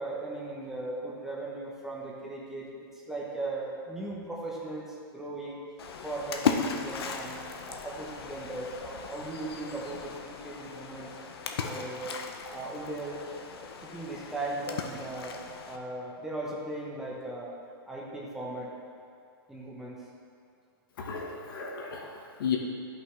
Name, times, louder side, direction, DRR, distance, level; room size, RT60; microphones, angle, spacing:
voice 1, 0.0-2.7 3.1-4.9 5.1-5.6 6.0-11.1 11.6-12.2 12.5-13.5 13.8-15.4 15.7-17.5 17.9-18.7 19.5-20.0, right 2 dB, 5° right, -4 dB, 0.8 m, -38 dB
Splash splatter, 5.8-15.8, left 6 dB, 80° left, 0.7 m, -37 dB
voice 2, 21.0-22.6, left 7 dB, 60° left, 0 dB, 1.2 m, -34 dB
11.0 x 5.6 x 3.3 m, 2.3 s
hypercardioid pair, 160°, 13 cm